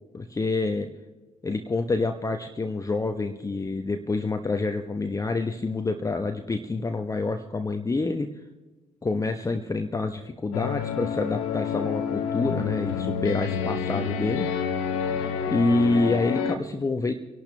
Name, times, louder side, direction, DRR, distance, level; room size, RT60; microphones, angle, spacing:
voice 1, 0.1-0.9 1.4-8.3 9.0-14.5 15.5-17.1, left 3 dB, 20° left, 6 dB, 0.9 m, -27 dB
sound 1, 10.5-16.6, left 7 dB, 70° left, 1.0 m, -28 dB
25.0 x 11.5 x 3.3 m, 1.1 s
figure-of-eight pair, 50°, 17 cm